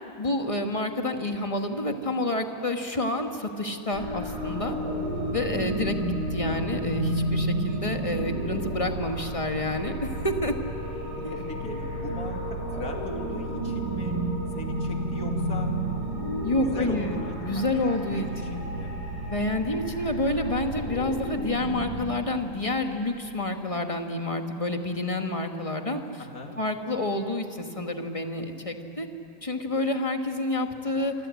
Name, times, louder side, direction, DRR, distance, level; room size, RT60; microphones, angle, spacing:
voice 1, 0.2-4.8 5.3-10.6 11.2-11.4 11.7-11.8 16.4-18.7 19.3-26.2 26.6-29.1 29.4-31.1, left 1 dB, 20° left, 4 dB, 1.6 m, -29 dB
sound 1, 3.9-21.8, right 1 dB, 80° left, 6.4 m, -31 dB
voice 2, 11.2-14.2 14.5-15.7 16.4-18.9 26.2-26.6, left 2 dB, 55° left, 2 dB, 2.9 m, -39 dB
27.5 x 24.5 x 8.5 m, 2.8 s
omnidirectional pair, 1.9 m